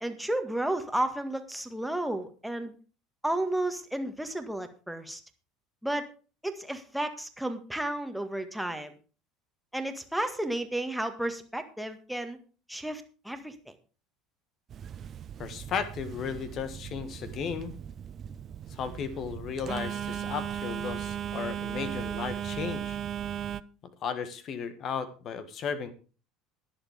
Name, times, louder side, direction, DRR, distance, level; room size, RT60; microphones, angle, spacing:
voice 1, 0.0-2.7 3.2-5.2 5.8-6.1 6.4-9.0 9.7-12.4 12.7-13.7, right 1 dB, ahead, 6 dB, 1.7 m, -32 dB
Telephone, 14.7-23.6, right 9 dB, 35° right, 0.5 m, -37 dB
voice 2, 15.4-17.8 18.7-23.0 24.0-25.9, left 6 dB, 40° left, 12 dB, 1.6 m, -35 dB
20.5 x 7.3 x 3.6 m, 0.37 s
figure-of-eight pair, 70°, 0 cm